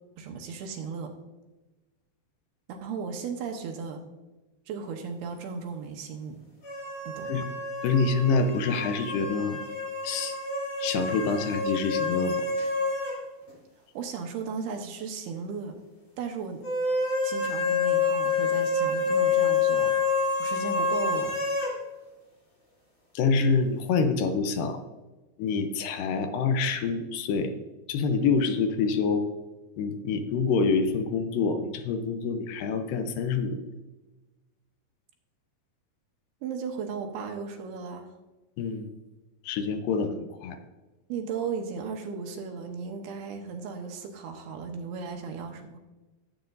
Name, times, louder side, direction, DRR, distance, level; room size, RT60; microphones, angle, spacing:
voice 1, 0.2-1.1 2.7-4.0 4.7-6.4 7.1-7.3 13.9-15.8 16.2-16.6 17.2-19.9 20.4-21.3 36.4-38.1 41.1-45.8, right 5 dB, 80° right, 3 dB, 2.8 m, -36 dB
sound 1, 6.6-13.2 13.5-13.6 16.6-21.7, left 4 dB, 35° left, 3.6 m, -28 dB
voice 2, 7.8-9.7 10.0-10.4 10.8-12.5 23.1-24.8 25.4-27.5 27.9-29.3 29.8-33.6 38.6-38.9 39.4-40.6, left 4 dB, 80° left, 7 dB, 2.1 m, -26 dB
14.0 x 7.9 x 2.6 m, 1.1 s
omnidirectional pair, 4.8 m